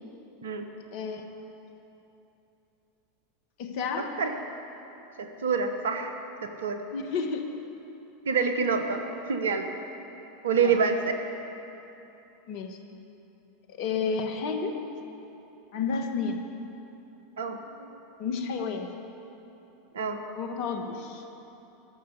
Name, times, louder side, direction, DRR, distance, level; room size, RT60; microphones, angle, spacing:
voice 1, 0.9-1.2 3.6-4.1 6.9-7.5 10.6-10.8 12.5-12.8 13.8-14.8 15.7-16.4 18.2-18.9 20.3-21.2, left 5 dB, 55° left, 5 dB, 1.3 m, -31 dB
voice 2, 5.2-6.1 6.4-6.8 8.3-9.7 10.4-11.1 17.4-18.0 19.9-20.2, right 5 dB, 75° right, 6 dB, 1.1 m, -27 dB
14.0 x 6.9 x 9.3 m, 3.0 s
hypercardioid pair, 85°, 0 cm